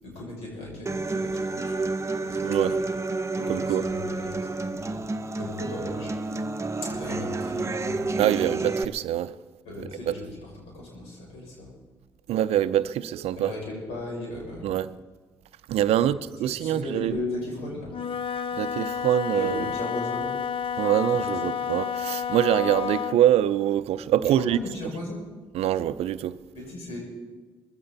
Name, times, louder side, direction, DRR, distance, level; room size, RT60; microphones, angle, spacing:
voice 1, 0.0-2.9 3.4-6.4 6.8-8.2 9.6-11.7 13.4-14.8 15.8-17.9 18.5-18.6 19.3-20.3 21.2-21.5 24.2-25.2 26.5-27.0, left 2 dB, 75° left, 6.6 m, -37 dB
Human voice / Acoustic guitar, 0.9-8.8, right 3 dB, 25° right, 0.9 m, -30 dB
voice 2, 2.4-2.7 3.5-3.8 8.2-9.4 10.1-10.2 12.3-13.5 14.6-14.9 15.7-17.1 18.6-19.7 20.8-24.6 25.5-26.4, right 11 dB, 70° right, 0.6 m, -24 dB
Wind instrument woodwind instrument, 17.8-23.3, left 7 dB, 55° left, 0.7 m, -30 dB
21.0 x 15.0 x 4.1 m
hypercardioid pair, 50°, 11 cm